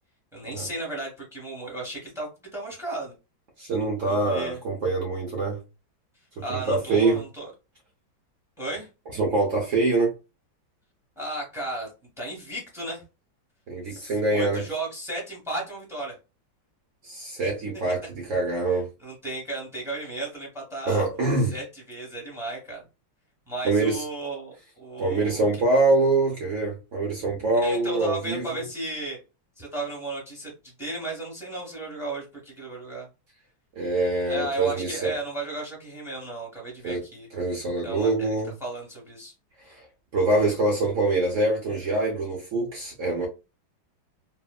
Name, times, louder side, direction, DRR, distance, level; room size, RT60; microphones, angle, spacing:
voice 1, 0.3-3.1 4.0-4.6 6.4-7.5 8.6-8.9 11.2-11.9 12.2-13.0 13.9-16.1 17.4-17.5 19.0-21.0 21.5-22.8 23.5-25.5 27.5-29.2 29.6-30.5 30.8-33.1 34.2-37.3 37.8-38.3 38.6-39.3, right 2 dB, ahead, 0.8 m, -34 dB
voice 2, 3.6-5.6 6.4-7.2 9.1-10.1 13.7-14.6 17.0-18.9 20.9-21.6 23.6-24.0 25.0-28.6 33.8-35.1 36.8-37.0 37.3-38.5 39.7-39.8 40.1-43.3, right 2 dB, 70° right, 0.7 m, -24 dB
3.2 x 2.1 x 2.3 m
omnidirectional pair, 2.2 m